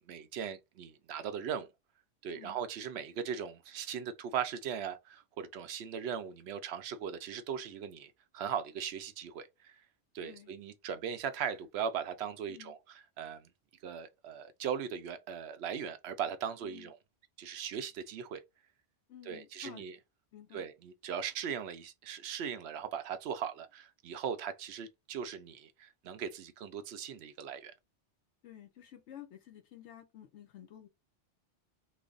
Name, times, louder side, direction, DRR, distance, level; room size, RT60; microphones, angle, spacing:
voice 1, 0.1-1.7 2.2-9.7 10.1-12.8 13.2-13.5 13.8-17.0 17.4-18.4 19.2-20.0 20.5-27.7, right 7 dB, 65° right, 0.8 m, -39 dB
voice 2, 10.2-10.5 12.5-12.8 16.6-16.9 19.1-19.8 20.3-20.6 28.4-30.9, left 11 dB, 75° left, 0.9 m, -52 dB
3.1 x 2.0 x 3.8 m
omnidirectional pair, 1.2 m